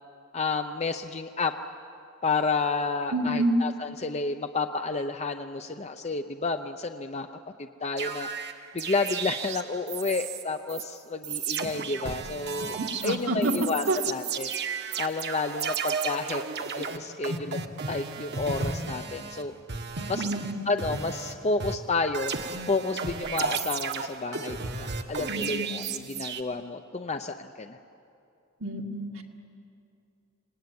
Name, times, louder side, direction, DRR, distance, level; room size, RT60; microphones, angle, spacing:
voice 1, 0.3-1.5 2.2-7.3 7.6-8.3 8.7-14.5 15.0-16.4 16.8-17.6 17.9-19.5 20.1-20.3 20.7-22.3 22.7-27.8, left 3 dB, 30° left, 7 dB, 0.7 m, -30 dB
voice 2, 3.1-3.6 13.0-13.5 13.9-14.0 20.2-20.7 25.3-25.8 28.6-29.2, right 2 dB, 80° right, 1 dB, 2.2 m, -28 dB
sound 1, 8.0-10.4 10.7-10.8 11.2-19.4 19.7-21.3 21.6-26.4, right 5 dB, 55° right, 1.3 m, -33 dB
26.0 x 19.5 x 9.5 m, 2.7 s
head